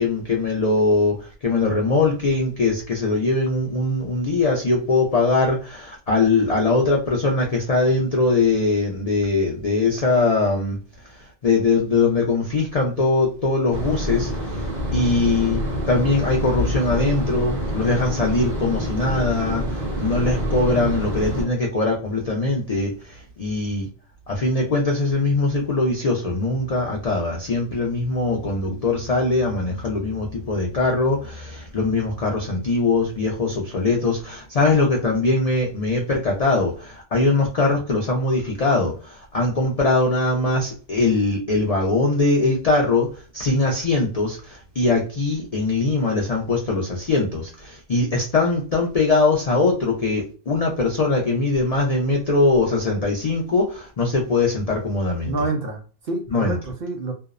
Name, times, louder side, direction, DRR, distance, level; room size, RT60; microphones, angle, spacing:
voice 1, 0.0-10.8 11.0-23.9 24.3-55.3 56.3-56.6, left 3 dB, 80° left, -1 dB, 0.3 m, -21 dB
sound 1, 13.7-21.4, equal, 35° right, 1.0 m, -26 dB
voice 2, 55.2-57.1, right 2 dB, 60° right, 2 dB, 0.6 m, -28 dB
2.6 x 2.0 x 2.3 m, 0.38 s
omnidirectional pair, 1.3 m